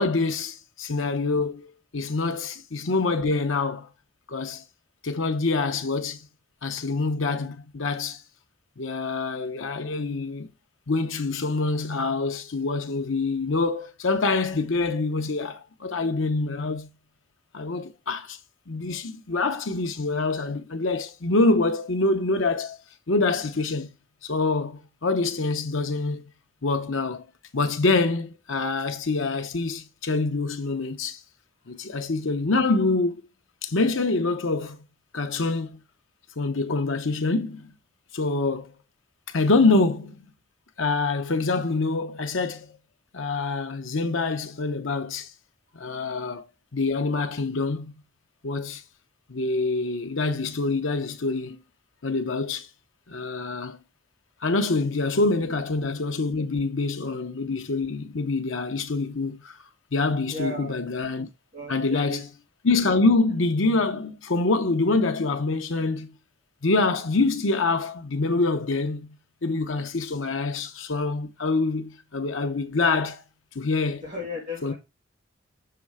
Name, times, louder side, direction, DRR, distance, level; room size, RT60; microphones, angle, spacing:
voice 1, 0.0-3.9 4.3-4.6 5.0-6.3 6.6-8.2 8.8-10.5 10.9-16.9 17.5-18.4 18.7-22.8 23.1-23.9 24.2-26.3 26.6-27.2 27.5-31.2 31.7-33.2 33.6-34.8 35.1-35.8 36.4-37.7 38.1-38.7 39.3-40.2 40.8-42.8 43.1-45.3 45.7-46.4 46.7-47.9 48.4-48.8 49.3-51.6 52.0-52.7 53.1-53.8 54.4-59.6 59.9-61.3 61.7-62.3 62.6-66.1 66.6-69.2 69.4-73.2 73.5-74.0 74.6-74.7, left 3 dB, 80° left, 0.9 m, -25 dB
voice 2, 60.3-60.7 61.5-62.2 74.0-74.7, left 1 dB, 45° right, 2.3 m, -36 dB
6.9 x 3.2 x 4.8 m
head